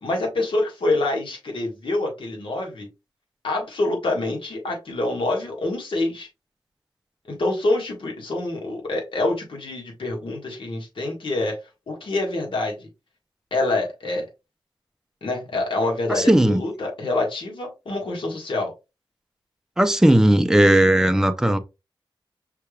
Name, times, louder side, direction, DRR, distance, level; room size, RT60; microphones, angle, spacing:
voice 1, 0.0-2.9 3.4-6.3 7.2-11.6 11.9-12.9 13.5-14.2 15.2-18.7, left 2 dB, 75° left, 1.6 m, -26 dB
voice 2, 16.1-16.6 19.8-21.6, right 1 dB, 5° right, 0.5 m, -17 dB
5.7 x 3.4 x 2.3 m
wide cardioid pair, 90°, 9 cm